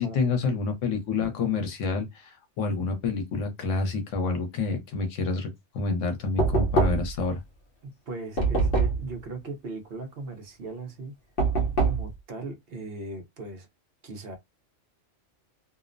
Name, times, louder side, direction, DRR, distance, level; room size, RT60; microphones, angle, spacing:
voice 1, 0.0-7.4, left 4 dB, 80° left, 1.1 m, -28 dB
Knock, 6.4-7.2 8.4-9.1 11.4-12.1, right 3 dB, 50° left, 0.9 m, -24 dB
voice 2, 7.8-11.1 11.8-13.7 14.0-14.4, right 3 dB, 55° right, 0.9 m, -38 dB
2.7 x 2.0 x 2.4 m
omnidirectional pair, 1.3 m